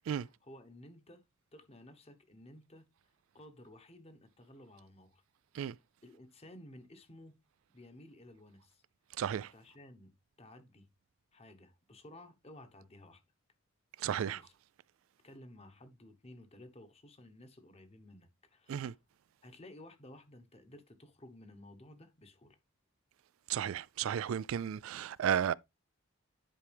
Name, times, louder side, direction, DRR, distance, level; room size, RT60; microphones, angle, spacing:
voice 1, 0.1-1.2 1.5-2.9 3.3-5.2 6.0-7.4 7.7-8.8 9.5-10.1 10.4-10.9 11.3-13.2 14.2-14.5 15.2-19.0 19.4-22.6, left 1 dB, 30° left, 1.1 m, -55 dB
voice 2, 9.2-9.5 14.0-14.4 18.7-18.9 23.5-25.5, right 9 dB, 70° right, 0.3 m, -33 dB
10.0 x 4.7 x 3.4 m
head